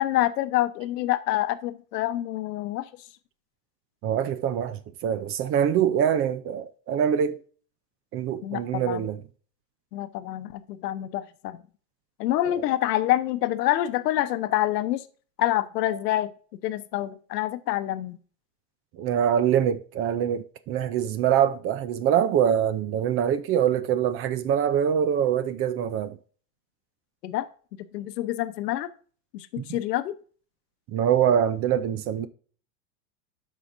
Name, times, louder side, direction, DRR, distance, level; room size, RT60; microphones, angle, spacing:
voice 1, 0.0-2.9 8.4-9.1 9.9-11.6 12.2-15.0 15.4-16.3 16.6-18.2 27.2-27.5 27.9-28.9 29.3-30.1, left 14 dB, 90° left, 0.9 m, -27 dB
voice 2, 4.0-7.4 8.1-9.2 18.9-26.2 29.6-29.8 30.9-32.3, right 9 dB, 30° right, 0.5 m, -24 dB
13.0 x 5.0 x 2.6 m
supercardioid pair, 140°, 47 cm